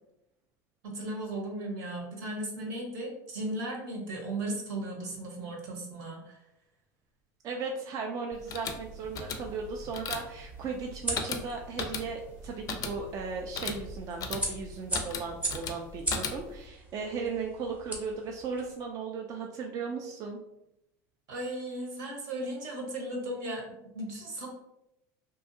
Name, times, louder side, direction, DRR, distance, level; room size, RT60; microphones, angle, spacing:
voice 1, 0.8-6.4 21.3-23.6 23.9-24.5, right 1 dB, 75° right, -1 dB, 1.0 m, -36 dB
voice 2, 7.4-20.4, right 4 dB, 40° right, 2 dB, 0.3 m, -36 dB
sound 1, 8.3-16.7, left 5 dB, 40° left, 0.4 m, -38 dB
sound 2, 8.8-18.7, right 1 dB, 15° right, 0.7 m, -40 dB
2.7 x 2.3 x 2.6 m, 0.85 s
supercardioid pair, 120°, 9 cm